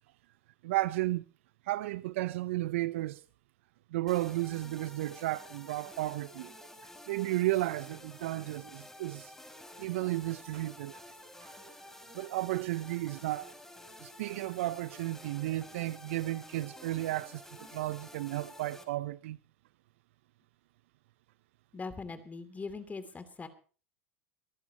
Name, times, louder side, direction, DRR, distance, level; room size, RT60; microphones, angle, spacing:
voice 1, 0.6-1.2 1.7-3.2 3.9-6.5 6.8-9.3 9.8-11.0 11.4-11.5 12.1-13.5 14.0-17.4 17.7-19.4, right 17 dB, 75° right, 0.6 m, -33 dB
sound 1, 4.1-18.8, left 1 dB, 5° left, 4.9 m, -51 dB
voice 2, 21.7-23.5, left 4 dB, 20° left, 2.8 m, -41 dB
23.5 x 14.5 x 2.9 m
hypercardioid pair, 85°, 7 cm